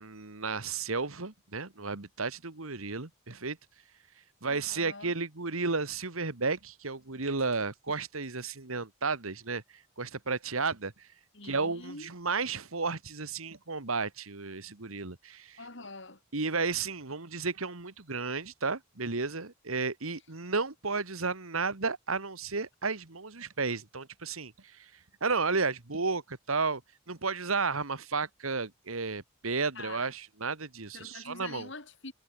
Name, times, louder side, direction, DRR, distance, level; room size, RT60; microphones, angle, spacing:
voice 1, 0.0-3.6 4.4-11.1 11.4-15.6 16.3-24.9 25.2-26.8 27.1-31.7, right 4 dB, 85° right, 1.9 m, -33 dB
voice 2, 4.5-5.1 11.3-12.1 15.6-16.2 29.7-30.1 30.9-32.1, left 3 dB, 60° left, 4.3 m, -45 dB
head